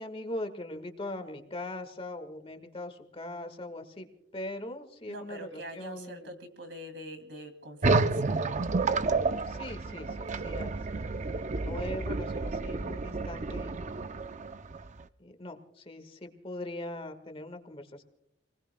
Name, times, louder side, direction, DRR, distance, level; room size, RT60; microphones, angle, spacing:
voice 1, 0.0-4.1 4.3-6.3 9.5-14.1 15.2-18.0, left 1 dB, 30° left, 7 dB, 1.5 m, -41 dB
voice 2, 5.1-8.3, right 1 dB, 65° right, 7 dB, 2.6 m, -44 dB
sound 1, 7.8-15.0, right 3 dB, 40° right, 0.5 m, -30 dB
28.5 x 20.0 x 2.2 m, 0.80 s
head